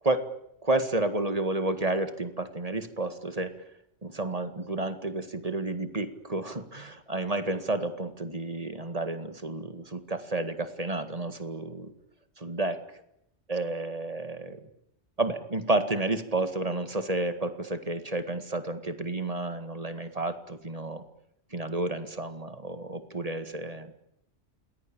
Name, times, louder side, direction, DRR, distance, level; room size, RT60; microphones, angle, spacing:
voice 1, 0.6-3.6 4.0-11.9 12.4-12.8 13.5-14.6 15.2-21.0 21.5-23.9, right 2 dB, 30° right, 9 dB, 2.1 m, -31 dB
28.5 x 21.0 x 8.9 m, 0.78 s
omnidirectional pair, 1.2 m